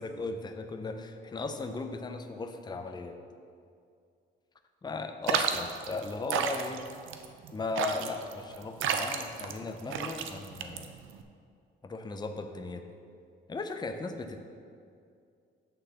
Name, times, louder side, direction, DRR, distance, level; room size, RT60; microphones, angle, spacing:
voice 1, 0.0-3.2 4.8-6.8 7.5-10.9 11.8-12.8 13.5-14.4, left 3 dB, 20° left, 6 dB, 0.6 m, -37 dB
sound 1, 5.3-11.2, right 7 dB, 80° right, 0.6 m, -32 dB
9.0 x 4.0 x 6.7 m, 2.3 s
cardioid pair, 90°, 20 cm